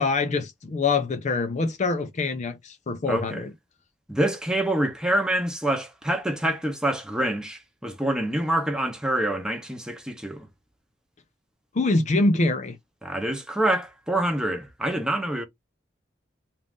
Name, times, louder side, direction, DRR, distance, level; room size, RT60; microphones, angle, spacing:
voice 1, 0.0-3.5 11.7-12.8, left 3 dB, 40° left, 0.5 m, -24 dB
voice 2, 3.1-3.4 4.1-10.5 13.0-15.4, right 1 dB, 5° right, 0.9 m, -26 dB
3.7 x 2.5 x 3.6 m
head